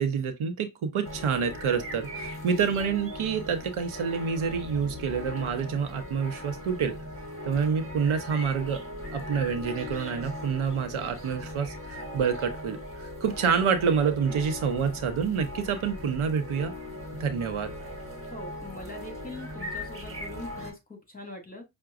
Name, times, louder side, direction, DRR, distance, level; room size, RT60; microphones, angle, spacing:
voice 1, 0.0-6.9 7.5-8.8 9.1-16.7 17.2-17.7, right 6 dB, 75° right, 0.8 m, -28 dB
sound 1, 1.0-20.7, left 1 dB, 25° right, 1.4 m, -39 dB
voice 2, 18.3-21.6, left 2 dB, 15° left, 2.0 m, -42 dB
5.7 x 2.2 x 2.5 m
cardioid pair, 65°, 49 cm